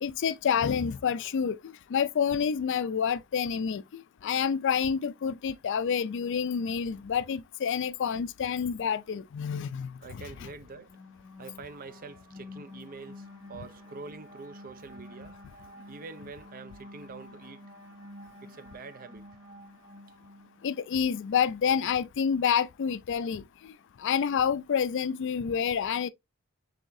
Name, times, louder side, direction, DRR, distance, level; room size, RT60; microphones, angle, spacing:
voice 1, 0.0-10.5 20.6-23.7 24.0-26.1, left 7 dB, 60° left, 0.4 m, -28 dB
voice 2, 10.0-10.9 11.4-15.4 15.9-17.6 18.4-19.3, right 4 dB, 40° right, 0.5 m, -45 dB
sound 1, 10.5-21.0, left 1 dB, 20° right, 2.4 m, -49 dB
5.7 x 3.5 x 2.6 m
head